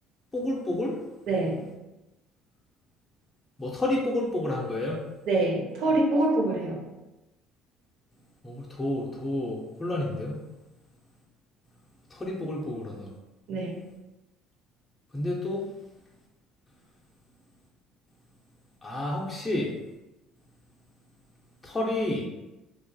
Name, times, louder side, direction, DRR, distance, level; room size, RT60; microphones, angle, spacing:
voice 1, 0.3-1.0 3.6-5.0 8.4-10.4 12.1-13.1 15.1-15.6 18.8-19.7 21.6-22.3, left 1 dB, 20° left, -3 dB, 0.5 m, -30 dB
voice 2, 1.3-1.6 5.3-6.8 13.5-13.8, right 2 dB, 70° right, -1 dB, 0.6 m, -25 dB
2.4 x 2.3 x 2.2 m, 1.0 s
hypercardioid pair, 65°, 0 cm